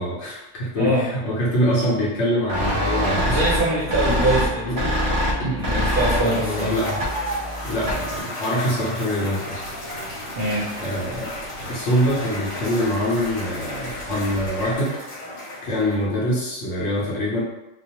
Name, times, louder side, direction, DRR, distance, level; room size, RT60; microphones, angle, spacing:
voice 1, 0.0-3.4 4.7-4.8 5.4-5.6 6.2-7.0 7.6-9.6 10.8-15.0 15.6-17.4, equal, 65° left, -5 dB, 0.9 m, -24 dB
voice 2, 0.8-1.1 3.3-4.9 5.5-6.8 10.4-10.7, right 1 dB, 55° right, -6 dB, 0.7 m, -23 dB
sound 1, 2.5-8.2, equal, 35° right, 0.3 m, -24 dB
Cheering / Applause / Crowd, 5.6-16.1, left 1 dB, 35° left, 0.5 m, -34 dB
sound 2, 9.5-14.7, left 1 dB, 85° left, 1.1 m, -39 dB
2.3 x 2.3 x 2.8 m, 0.94 s
omnidirectional pair, 1.4 m